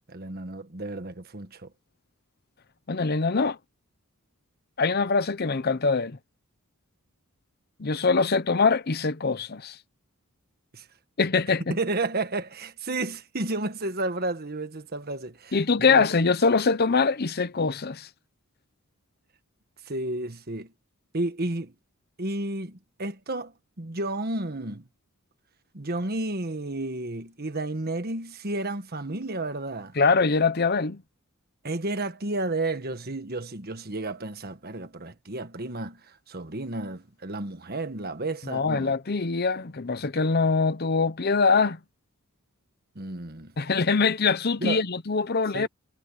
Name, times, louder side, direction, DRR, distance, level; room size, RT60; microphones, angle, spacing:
voice 1, 0.1-1.7 10.7-10.9 11.7-15.6 15.9-16.1 19.9-20.7 21.1-21.7 22.2-24.9 25.7-30.0 31.6-38.9 42.9-43.5 44.6-44.8 45.5-45.7, right 2 dB, 45° right, 1.5 m, -32 dB
voice 2, 2.9-3.6 4.8-6.2 7.8-9.7 11.2-11.6 15.5-18.1 30.0-31.0 38.5-41.8 43.6-45.7, left 4 dB, 45° left, 0.8 m, -23 dB
head